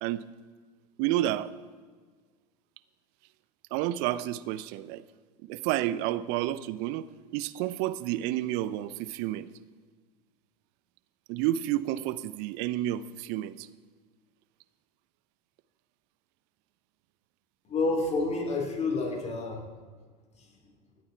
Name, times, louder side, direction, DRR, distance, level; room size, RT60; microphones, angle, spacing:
voice 1, 1.0-1.5 3.7-5.0 5.4-7.1 7.3-9.5 11.3-13.7, right 14 dB, 55° right, 15 dB, 0.8 m, -30 dB
voice 2, 17.7-19.6 20.4-20.5, left 3 dB, 30° left, 1 dB, 4.2 m, -29 dB
25.0 x 8.9 x 4.6 m, 1.5 s
hypercardioid pair, 80°, 21 cm